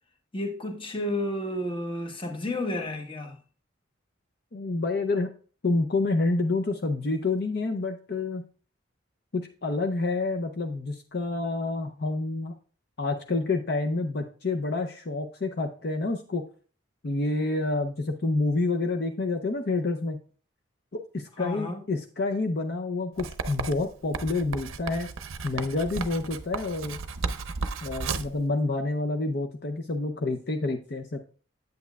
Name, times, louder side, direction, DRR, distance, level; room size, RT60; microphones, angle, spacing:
voice 1, 0.3-3.4 21.4-21.8, left 1 dB, 25° left, 1.0 m, -31 dB
voice 2, 4.5-5.3 5.6-8.4 9.3-12.5 13.0-16.4 17.0-20.2 20.9-25.1 25.4-27.0 27.8-31.2, left 3 dB, 55° left, 0.6 m, -28 dB
Writing, 23.2-28.4, right 4 dB, 90° right, 0.6 m, -34 dB
8.6 x 8.1 x 2.3 m
head